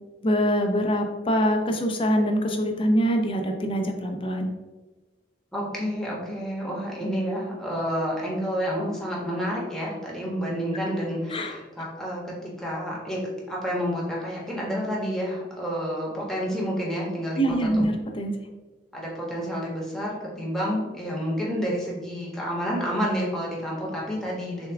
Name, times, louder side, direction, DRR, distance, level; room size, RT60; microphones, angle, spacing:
voice 1, 0.2-4.5 11.3-11.6 17.4-18.4, equal, 30° left, 3 dB, 0.6 m, -24 dB
voice 2, 5.5-13.2 13.5-17.8 18.9-24.7, equal, ahead, -5 dB, 1.2 m, -29 dB
6.5 x 2.3 x 3.4 m, 1.2 s
head